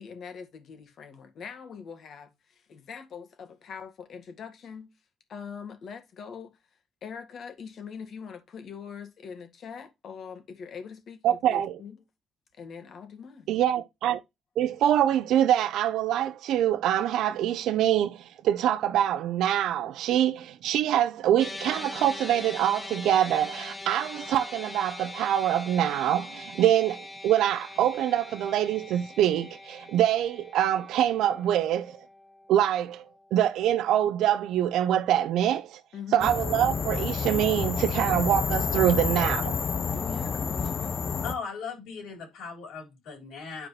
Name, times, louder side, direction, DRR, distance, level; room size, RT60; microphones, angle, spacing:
voice 1, 0.0-4.9 5.3-6.5 7.0-12.0 12.6-13.5 35.9-36.3 39.9-41.0, left 6 dB, 60° left, 2.0 m, -42 dB
voice 2, 11.2-11.8 13.5-14.2 14.6-32.0 32.5-33.0 33.3-35.8 36.1-39.6, right 11 dB, 85° right, 0.5 m, -25 dB
sound 1, 21.4-33.8, left 2 dB, 20° left, 0.9 m, -42 dB
sound 2, 36.2-41.3, left 5 dB, 45° left, 0.8 m, -29 dB
voice 3, 41.2-43.7, left 5 dB, 85° left, 4.3 m, -38 dB
9.9 x 4.9 x 3.0 m
cardioid pair, 90°, 0 cm